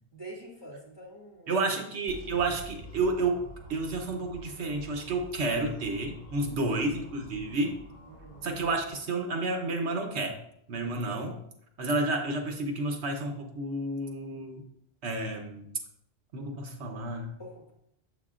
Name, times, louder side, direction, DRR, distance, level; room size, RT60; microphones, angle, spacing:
voice 1, 0.1-1.8 6.5-6.8 8.1-8.5 17.4-17.7, right 1 dB, 25° left, -4 dB, 1.9 m, -46 dB
voice 2, 1.5-3.4 3.7-7.8 8.4-10.4 10.7-11.4 11.8-14.6 15.0-15.7 16.3-17.3, right 2 dB, 80° right, 4 dB, 1.1 m, -30 dB
sound 1, 2.1-8.9, equal, 25° right, 2.0 m, -48 dB
7.5 x 6.4 x 2.4 m, 0.74 s
omnidirectional pair, 1.1 m